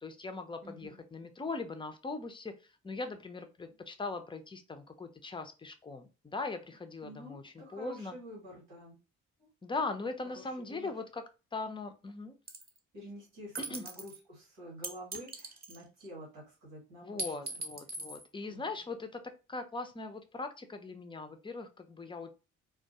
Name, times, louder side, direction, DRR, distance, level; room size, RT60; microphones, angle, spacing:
voice 1, 0.0-8.1 9.6-11.2 11.5-12.3 13.7-13.8 17.0-19.2 19.5-22.3, left 3 dB, 15° left, 7 dB, 0.5 m, -40 dB
voice 2, 0.6-1.0 7.0-9.0 9.4-9.5 10.2-11.0 12.9-17.6 18.5-18.8, equal, 85° right, -4 dB, 1.1 m, -49 dB
sound 1, 12.5-12.8 13.5-14.2 14.8-16.1 17.2-18.2, right 2 dB, 25° right, 0.8 m, -40 dB
2.2 x 2.2 x 2.7 m, 0.30 s
hypercardioid pair, 45°, 36 cm